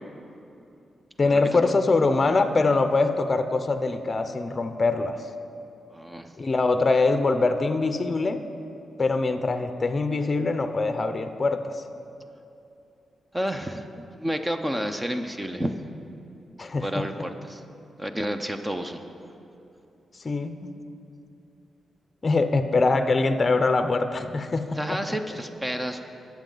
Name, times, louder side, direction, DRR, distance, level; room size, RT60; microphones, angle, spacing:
voice 1, 1.2-5.2 6.4-8.4 9.0-11.8 16.6-17.0 20.2-20.7 22.2-25.0, left 3 dB, 30° left, 8 dB, 0.6 m, -23 dB
voice 2, 5.9-6.3 13.3-15.7 16.8-17.6 18.0-19.0 24.7-26.0, equal, 15° right, 6 dB, 0.6 m, -30 dB
19.5 x 7.3 x 3.9 m, 2.8 s
cardioid pair, 110°, 0 cm